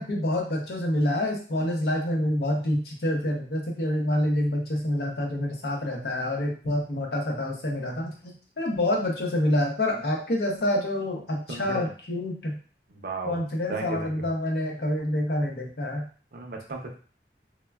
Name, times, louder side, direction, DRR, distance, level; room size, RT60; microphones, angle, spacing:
voice 1, 0.0-12.6 13.2-16.1, left 1 dB, 60° left, 0 dB, 0.6 m, -27 dB
voice 2, 11.5-11.9 12.9-13.4 13.7-14.3 16.3-17.0, right 3 dB, 55° right, 1 dB, 0.5 m, -35 dB
3.3 x 2.1 x 2.2 m, 0.41 s
head